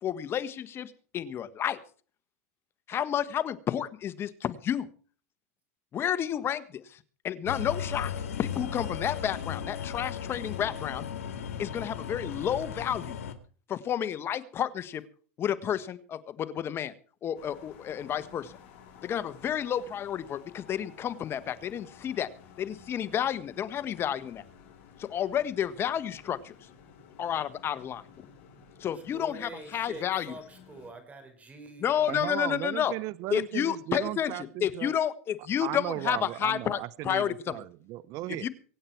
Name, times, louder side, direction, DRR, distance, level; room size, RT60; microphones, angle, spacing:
voice 1, 0.0-1.8 2.9-4.9 5.9-7.0 7.2-8.1 8.4-11.0 11.6-13.2 13.7-15.0 15.4-16.9 17.2-18.5 19.0-22.3 22.6-24.4 25.0-26.5 27.2-28.0 28.8-30.3 31.8-32.9 33.3-34.3 34.6-37.3 38.4-38.5, left 9 dB, 30° left, 16 dB, 1.3 m, -30 dB
sound 1, 7.5-13.3, left 7 dB, 90° left, 2.2 m, -36 dB
sound 2, 17.3-30.9, left 7 dB, 65° left, 6.9 m, -54 dB
voice 2, 28.9-32.2, right 2 dB, 20° right, 7 dB, 5.5 m, -46 dB
voice 3, 32.1-34.9 35.6-38.5, right 17 dB, 50° right, 20 dB, 0.7 m, -36 dB
24.0 x 8.8 x 4.6 m, 0.42 s
supercardioid pair, 120°, 8 cm